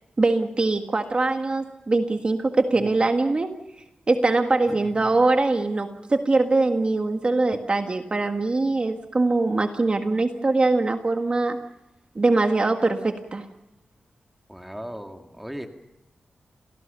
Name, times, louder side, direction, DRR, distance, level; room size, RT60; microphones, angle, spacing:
voice 1, 0.2-3.6 4.1-11.6 12.1-13.4, right 3 dB, 35° right, 6 dB, 1.7 m, -22 dB
voice 2, 2.7-3.1 4.7-5.1 14.5-15.7, equal, 5° right, 5 dB, 2.2 m, -38 dB
28.0 x 18.0 x 6.8 m, 0.96 s
wide cardioid pair, 90°, 3 cm